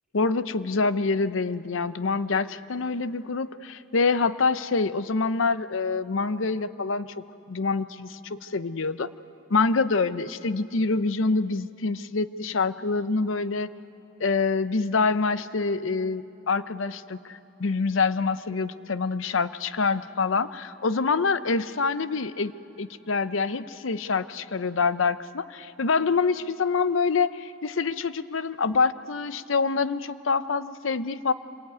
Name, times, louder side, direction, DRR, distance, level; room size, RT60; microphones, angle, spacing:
voice 1, 0.1-7.1 7.5-9.1 9.5-13.7 14.2-22.5 22.8-31.3, left 4 dB, 85° left, 13 dB, 0.7 m, -26 dB
26.0 x 22.0 x 9.4 m, 3.0 s
head